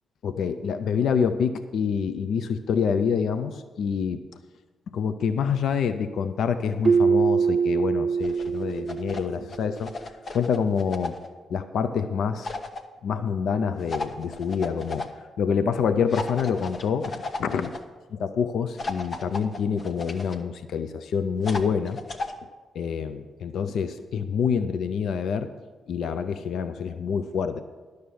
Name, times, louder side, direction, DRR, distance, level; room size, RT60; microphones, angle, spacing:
voice 1, 0.2-4.2 4.9-9.9 10.3-11.1 11.5-12.5 13.0-15.0 15.4-17.1 17.4-17.7 18.1-22.0 22.7-25.5 25.9-27.6, left 6 dB, 70° left, 9 dB, 0.5 m, -26 dB
Keyboard (musical), 6.8-9.6, right 5 dB, 50° right, 0.5 m, -23 dB
sound 1, 8.2-9.3 9.5-11.3 12.4-12.8 13.9-15.1 16.1-17.8 18.8-20.4 21.4-22.3, left 3 dB, 50° left, 0.9 m, -34 dB
11.0 x 6.6 x 6.9 m, 1.3 s
hypercardioid pair, 40°, 0 cm